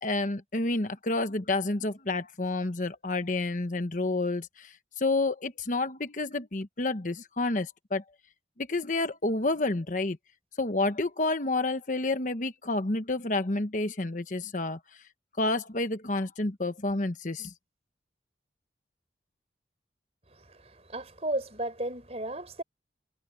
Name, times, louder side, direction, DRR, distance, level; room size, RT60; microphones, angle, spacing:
voice 1, 0.0-8.0 8.7-10.2 10.6-14.8 15.4-17.5, left 2 dB, 45° left, 1.1 m, -29 dB
voice 2, 20.4-22.6, right 1 dB, 35° right, 4.3 m, -34 dB
head